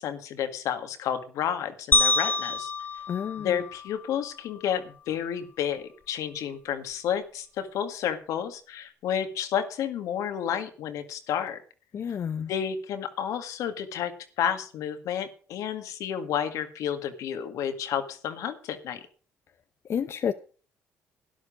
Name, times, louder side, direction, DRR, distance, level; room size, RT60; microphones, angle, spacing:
voice 1, 0.0-2.7 3.4-11.6 12.5-14.1 14.4-19.0, left 9 dB, 75° left, 1.9 m, -31 dB
sound 1, 1.9-4.3, left 3 dB, 35° left, 1.2 m, -26 dB
voice 2, 3.1-3.5 11.9-12.5 19.9-20.3, left 8 dB, 50° left, 0.8 m, -29 dB
12.0 x 11.0 x 5.1 m
supercardioid pair, 75°, 6 cm